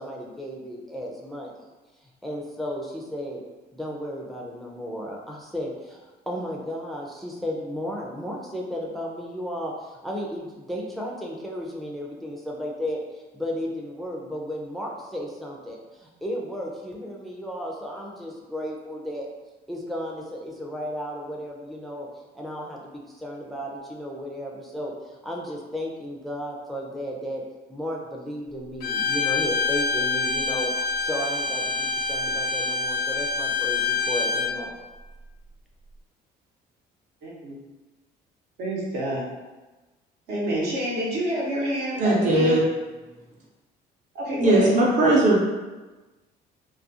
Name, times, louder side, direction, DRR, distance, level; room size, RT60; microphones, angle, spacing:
voice 1, 0.0-1.7 2.0-3.4 3.7-19.3 19.7-22.1 22.3-27.4 27.7-34.8, equal, ahead, -2 dB, 0.4 m, -34 dB
Bowed string instrument, 28.8-34.6, left 4 dB, 65° left, 0.4 m, -26 dB
voice 2, 37.2-37.5 38.6-39.3 40.3-42.5 44.1-44.7, equal, 75° right, -4 dB, 0.9 m, -28 dB
voice 3, 42.0-42.6 44.4-45.4, right 2 dB, 45° right, -4 dB, 0.7 m, -19 dB
2.3 x 2.3 x 2.7 m, 1.2 s
cardioid pair, 110°, 17 cm